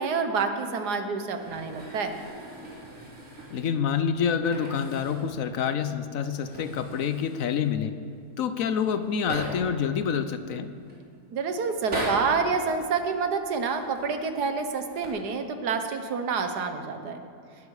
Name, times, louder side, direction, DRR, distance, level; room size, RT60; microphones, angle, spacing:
voice 1, 0.0-2.1 11.3-17.2, right 5 dB, 85° right, 7 dB, 1.7 m, -28 dB
sound 1, 1.4-3.9 4.3-5.4 5.7-5.8 6.2-7.7 8.5-8.6 8.8-9.8 10.4-10.9 11.7-12.4 13.5-14.1 14.8-15.1, right 1 dB, 55° right, 3.6 m, -38 dB
voice 2, 3.5-7.9 8.4-10.7, left 7 dB, 65° left, 11 dB, 1.1 m, -27 dB
19.5 x 12.0 x 4.8 m, 2.5 s
omnidirectional pair, 1.7 m